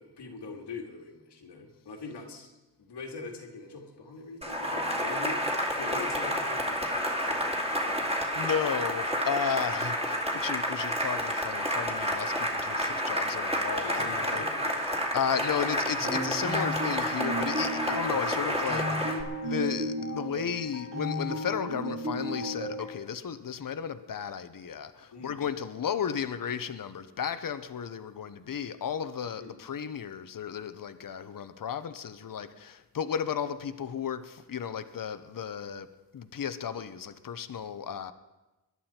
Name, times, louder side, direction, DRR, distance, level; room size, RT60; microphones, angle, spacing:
voice 1, 0.0-2.5 2.8-5.4 5.8-8.1 13.8-14.9 25.1-25.4 29.4-29.6, left 4 dB, 85° left, 2 dB, 2.3 m, -43 dB
Cheering / Applause, 4.4-19.2, equal, 15° right, 2.5 m, -30 dB
voice 2, 8.3-14.4 15.1-35.9 36.1-38.1, left 7 dB, 55° left, 11 dB, 0.9 m, -34 dB
sound 1, 16.0-22.8, equal, 50° right, 3.7 m, -34 dB
22.0 x 11.0 x 4.4 m, 1.1 s
cardioid pair, 85°, 40 cm